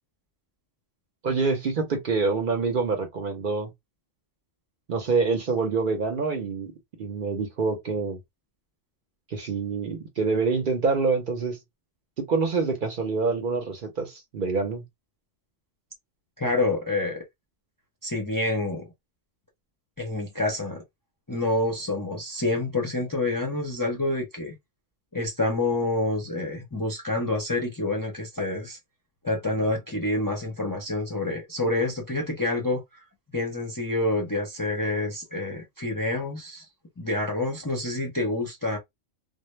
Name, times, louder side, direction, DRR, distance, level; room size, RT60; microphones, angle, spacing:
voice 1, 1.2-3.7 4.9-6.7 7.0-8.2 9.3-11.6 12.2-14.8, right 4 dB, 55° right, 0.7 m, -26 dB
voice 2, 16.4-17.2 18.0-18.9 20.0-20.8 21.3-24.5 25.1-28.8 29.2-32.8 33.3-36.6 37.0-38.8, left 2 dB, 25° left, 0.5 m, -27 dB
2.1 x 2.0 x 3.0 m
omnidirectional pair, 1.2 m